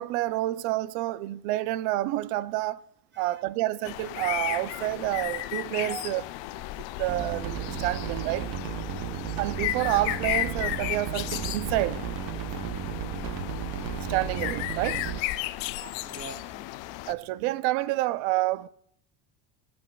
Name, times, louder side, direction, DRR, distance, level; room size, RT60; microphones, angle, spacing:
voice 1, 0.0-2.8 3.2-6.2 7.0-8.5 9.4-12.0 14.1-15.0 17.1-18.7, right 16 dB, 80° right, 0.6 m, -28 dB
sound 1, 3.8-17.1, left 16 dB, 65° left, 0.5 m, -34 dB
voice 2, 5.9-6.3 12.7-13.0 15.4-16.9, right 3 dB, 20° right, 1.2 m, -45 dB
sound 2, 7.1-15.2, right 9 dB, 45° right, 0.7 m, -34 dB
16.0 x 7.8 x 2.3 m
cardioid pair, 105°, 49 cm